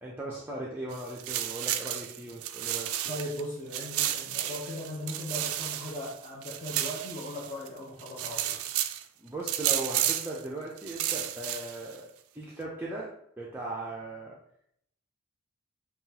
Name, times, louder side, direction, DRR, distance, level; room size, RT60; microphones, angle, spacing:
voice 1, 0.0-3.2 9.2-13.1 13.4-14.4, right 2 dB, 10° right, -5 dB, 0.4 m, -38 dB
sound 1, 0.9-3.4 3.7-7.7 8.0-9.0 9.5-10.4 10.8-11.9, right 12 dB, 75° right, 0.3 m, -32 dB
voice 2, 3.1-8.6, left 1 dB, 35° left, -6 dB, 0.7 m, -38 dB
5.6 x 2.4 x 2.8 m, 0.70 s
head